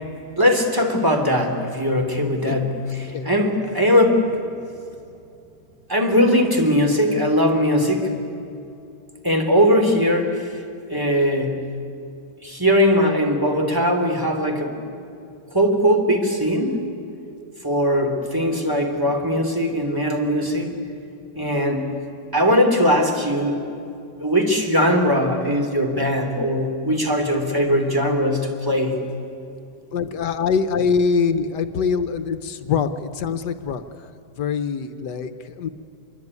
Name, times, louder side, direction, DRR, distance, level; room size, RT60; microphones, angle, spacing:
voice 1, 0.4-4.3 5.9-8.1 9.2-10.4 10.9-11.6 12.4-14.8 15.5-16.8 17.6-20.7 21.3-21.9 22.3-23.6 24.2-29.0, equal, 10° right, 4 dB, 2.9 m, -20 dB
voice 2, 29.9-34.1 34.4-35.7, left 5 dB, 75° left, 10 dB, 1.5 m, -24 dB
26.0 x 22.0 x 9.6 m, 2.6 s
omnidirectional pair, 1.9 m